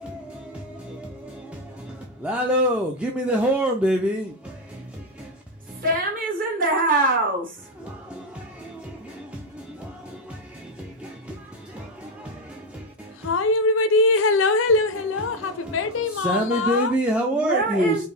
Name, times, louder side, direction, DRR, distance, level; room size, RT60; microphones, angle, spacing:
voice 1, 0.0-5.9 7.8-13.3 15.1-18.1, equal, 5° right, 0.3 m, -28 dB
voice 2, 5.8-7.6 17.3-18.1, right 2 dB, 45° right, 1.4 m, -23 dB
voice 3, 13.1-16.9, left 2 dB, 85° left, 0.5 m, -22 dB
4.4 x 2.6 x 3.2 m
head